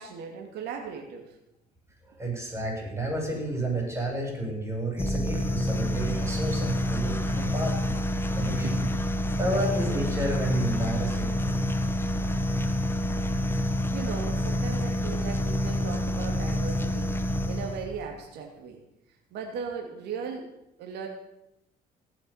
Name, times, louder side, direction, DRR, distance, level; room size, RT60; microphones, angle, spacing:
voice 1, 0.0-1.3 5.4-5.5 8.3-9.4 13.9-18.8 19.3-20.5 20.8-21.1, right 6 dB, 80° right, 1 dB, 2.7 m, -38 dB
voice 2, 2.1-7.9 8.4-8.7 9.4-11.7, right 1 dB, 15° right, 1 dB, 7.1 m, -31 dB
sound 1, 4.8-10.0, left 2 dB, 50° left, 2.6 m, -50 dB
sound 2, 5.0-18.0, left 1 dB, 15° left, 1.4 m, -28 dB
18.5 x 8.0 x 8.8 m, 0.87 s
cardioid pair, 110°, 17 cm